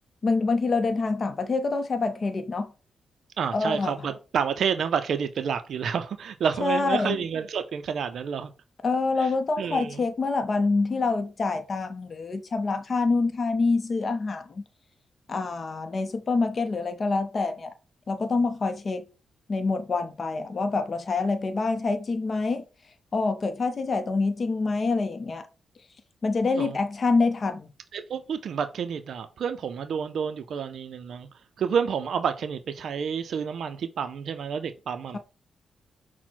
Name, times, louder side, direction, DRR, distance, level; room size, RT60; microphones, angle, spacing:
voice 1, 0.2-2.7 3.5-4.1 6.6-7.2 8.8-14.6 15.3-17.7 18.1-19.0 19.5-22.6 23.1-25.5 26.2-27.7, left 3 dB, 45° left, 0.5 m, -26 dB
voice 2, 3.4-8.5 9.2-9.3 9.6-10.0 26.6-26.8 27.9-31.3 31.6-35.2, right 7 dB, 70° right, 0.3 m, -29 dB
5.8 x 2.0 x 4.4 m
cardioid pair, 85°, 0 cm